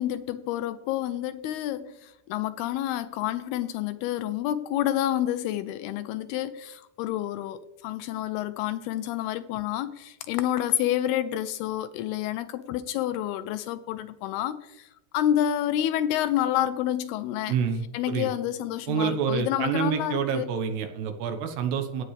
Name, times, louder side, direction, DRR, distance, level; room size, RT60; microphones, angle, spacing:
voice 1, 0.0-14.9 15.1-17.6 17.9-20.5, left 12 dB, 85° left, 12 dB, 2.3 m, -29 dB
voice 2, 17.5-18.3 18.9-22.0, right 7 dB, 75° right, 6 dB, 3.1 m, -28 dB
16.5 x 9.2 x 3.3 m, 0.87 s
omnidirectional pair, 5.0 m